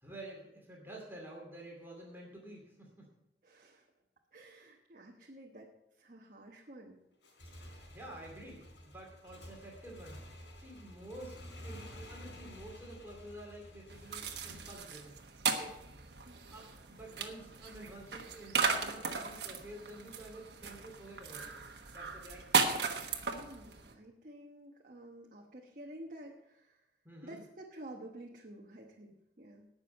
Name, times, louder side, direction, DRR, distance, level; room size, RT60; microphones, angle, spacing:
voice 1, 0.0-3.1 7.5-10.2 10.6-11.4 11.6-15.9 16.5-22.7 27.0-27.4, right 1 dB, 10° right, -2 dB, 2.6 m, -50 dB
voice 2, 3.4-3.9 4.3-7.0 16.2-16.4 23.3-26.9 27.2-29.7, right 1 dB, 50° right, 0 dB, 1.1 m, -51 dB
Motorcycle / Engine, 7.1-14.7, equal, 85° left, 3.9 m, -51 dB
sound 1, 13.9-23.9, right 5 dB, 70° right, 1.3 m, -36 dB
18.0 x 6.3 x 5.4 m, 0.86 s
head